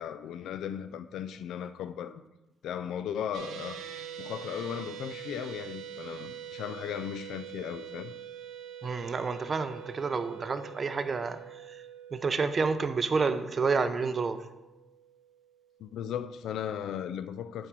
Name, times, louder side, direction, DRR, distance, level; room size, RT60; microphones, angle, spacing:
voice 1, 0.0-2.2 2.6-3.8 4.2-8.1 15.8-17.7, left 9 dB, 80° left, 0.4 m, -36 dB
sound 1, 3.3-15.7, right 9 dB, 85° right, 0.6 m, -45 dB
voice 2, 8.8-11.8 12.1-14.4, right 4 dB, 40° right, 0.5 m, -29 dB
7.6 x 4.5 x 4.7 m
cardioid pair, 90°, 0 cm